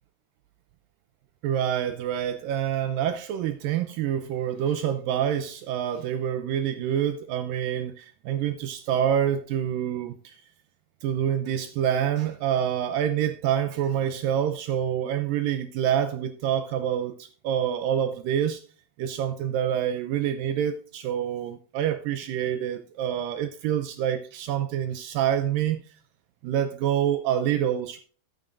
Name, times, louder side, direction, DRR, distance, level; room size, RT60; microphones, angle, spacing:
voice 1, 1.4-10.4 11.0-18.6 19.0-25.8 26.4-28.0, right 9 dB, 80° right, 2.0 m, -27 dB
12.5 x 9.5 x 2.6 m
omnidirectional pair, 4.6 m